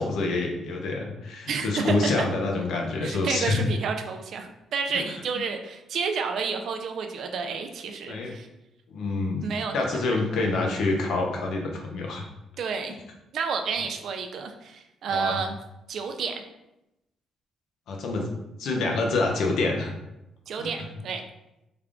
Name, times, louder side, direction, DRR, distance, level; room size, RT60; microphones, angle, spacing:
voice 1, 0.0-3.7 4.9-5.0 8.1-8.3 8.9-12.2 15.1-15.4 17.9-18.3 18.6-19.9 20.6-20.7, left 3 dB, 75° left, 1 dB, 0.7 m, -27 dB
voice 2, 1.5-2.3 3.0-8.5 9.4-10.2 12.6-12.9 13.3-15.6 15.9-16.4 20.5-21.2, right 5 dB, 65° right, 5 dB, 0.4 m, -30 dB
3.4 x 2.4 x 3.4 m, 0.91 s
cardioid pair, 90°, 0 cm